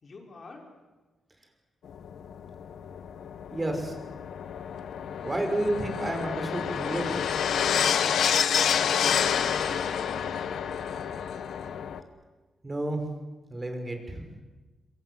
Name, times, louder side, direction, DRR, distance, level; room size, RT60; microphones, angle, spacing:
voice 1, 0.0-0.7 8.8-10.7, left 2 dB, 45° left, 1 dB, 5.3 m, -46 dB
sound 1, 1.9-12.0, left 8 dB, 80° left, 1.5 m, -29 dB
voice 2, 3.5-4.0 5.2-7.3 12.6-13.0 13.5-14.2, right 1 dB, 20° right, 5 dB, 5.6 m, -30 dB
26.5 x 25.0 x 7.7 m, 1.2 s
cardioid pair, 100°, 0 cm